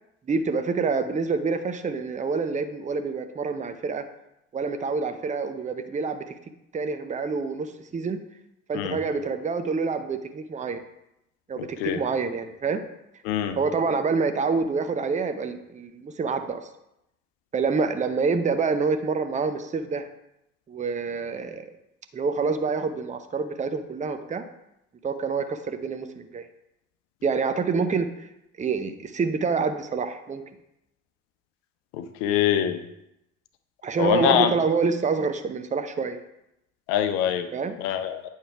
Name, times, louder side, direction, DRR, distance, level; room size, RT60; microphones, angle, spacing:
voice 1, 0.3-4.0 4.5-6.3 6.7-8.2 8.7-10.8 11.5-12.8 13.5-16.6 17.5-20.1 20.7-21.7 22.1-24.4 25.0-26.5 27.2-28.1 28.6-30.4 33.8-36.2 37.5-37.8, right 4 dB, 15° right, 9 dB, 0.8 m, -27 dB
voice 2, 13.3-13.6 32.2-32.8 34.0-34.5 36.9-37.5 37.8-38.3, left 10 dB, 60° left, 8 dB, 0.9 m, -23 dB
8.9 x 6.4 x 3.4 m, 0.83 s
figure-of-eight pair, 65°, 41 cm